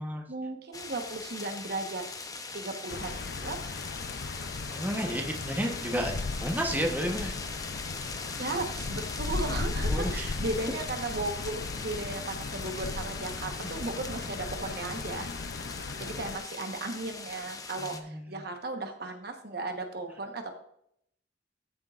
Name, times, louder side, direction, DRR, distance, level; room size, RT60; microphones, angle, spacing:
voice 1, 0.3-2.0 2.5-3.6 8.4-15.3 16.0-20.5, right 2 dB, 60° right, 5 dB, 1.2 m, -36 dB
sound 1, 0.7-18.0, left 4 dB, 20° left, 0.8 m, -41 dB
sound 2, 2.9-16.4, left 3 dB, 60° left, 0.5 m, -36 dB
voice 2, 4.7-6.1 6.4-7.4 9.4-9.5 9.9-10.3 13.6-13.7 17.8-18.4, equal, 10° right, 1 dB, 1.0 m, -32 dB
13.5 x 7.5 x 2.5 m, 0.70 s
head